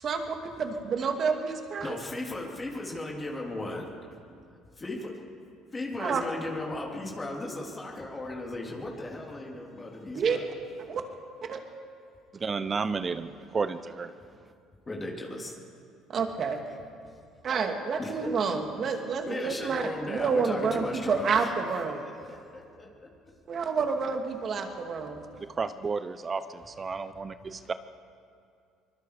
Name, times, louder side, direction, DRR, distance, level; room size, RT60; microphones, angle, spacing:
voice 1, 0.0-2.0 6.0-6.2 10.1-10.4 10.9-11.0 11.5-11.6 16.1-16.6 17.4-22.0 23.5-25.2, right 5 dB, 45° right, 4 dB, 2.5 m, -29 dB
voice 2, 1.8-3.9 4.8-5.1 5.7-10.5 14.9-15.5 18.0-18.6 18.8-19.0 19.3-22.9, left 2 dB, 25° left, -1 dB, 3.7 m, -37 dB
voice 3, 12.4-14.1 25.6-27.7, right 4 dB, 30° right, 12 dB, 0.8 m, -32 dB
24.5 x 21.5 x 5.1 m, 2.4 s
supercardioid pair, 75°, 0 cm